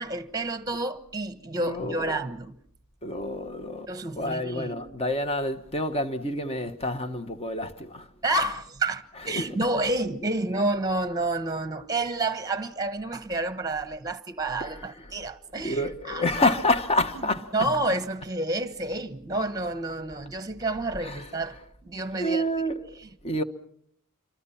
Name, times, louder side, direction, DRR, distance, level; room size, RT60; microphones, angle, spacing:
voice 1, 0.0-2.5 3.9-4.8 8.2-16.2 17.1-17.2 17.5-22.5, right 2 dB, 15° right, 1.2 m, -29 dB
voice 2, 1.6-2.2 3.0-3.9 4.2-8.1 9.3-9.5 14.6-15.2 15.6-17.5 21.0-21.3 22.2-23.4, left 1 dB, 25° left, 1.2 m, -28 dB
27.0 x 24.0 x 5.8 m
head